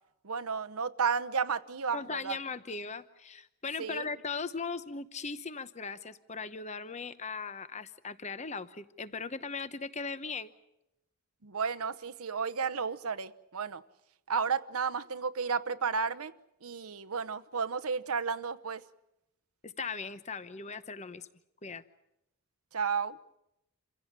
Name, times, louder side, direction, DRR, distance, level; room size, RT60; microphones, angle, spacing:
voice 1, 0.2-2.4 3.8-4.1 11.4-13.8 14.3-16.3 16.6-18.8 22.7-23.2, right 5 dB, 80° right, 0.9 m, -32 dB
voice 2, 1.9-10.5 19.6-21.3 21.6-21.8, left 4 dB, 30° left, 0.9 m, -38 dB
27.5 x 16.5 x 8.8 m
head